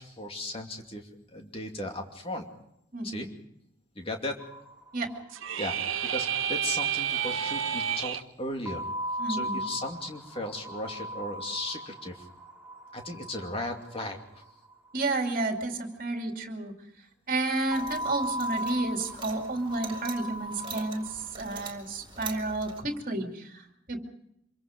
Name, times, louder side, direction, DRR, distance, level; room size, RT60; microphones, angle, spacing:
voice 1, 0.0-2.5 3.0-3.3 3.9-4.4 5.6-8.9 9.3-12.3 12.9-14.4, left 1 dB, 30° left, 3 dB, 2.6 m, -36 dB
voice 2, 2.9-3.3 4.9-5.1 9.2-9.6 14.9-16.7 17.3-24.0, right 2 dB, 45° right, 4 dB, 2.7 m, -31 dB
sound 1, 4.4-5.4 5.7-5.8 6.0-6.1 8.6-14.8 17.7-21.3, equal, 5° right, 2.8 m, -37 dB
sound 2, 5.3-8.2, right 8 dB, 90° right, 0.9 m, -30 dB
sound 3, 17.7-22.8, right 5 dB, 25° right, 2.9 m, -44 dB
26.0 x 23.0 x 5.2 m, 0.79 s
head